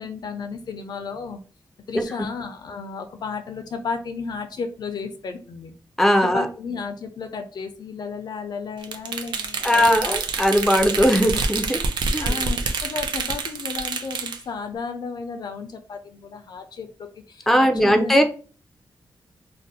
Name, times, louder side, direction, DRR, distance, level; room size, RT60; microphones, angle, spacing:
voice 1, 0.0-1.4 1.9-5.7 6.2-10.2 12.2-18.2, left 5 dB, 65° left, 8 dB, 0.4 m, -33 dB
voice 2, 6.0-6.5 9.6-11.8 12.1-12.4 17.5-18.2, equal, 5° left, 6 dB, 0.4 m, -19 dB
sound 1, 8.8-14.4, right 4 dB, 85° right, 0.4 m, -27 dB
2.5 x 2.1 x 3.9 m, 0.39 s
wide cardioid pair, 95°, 8 cm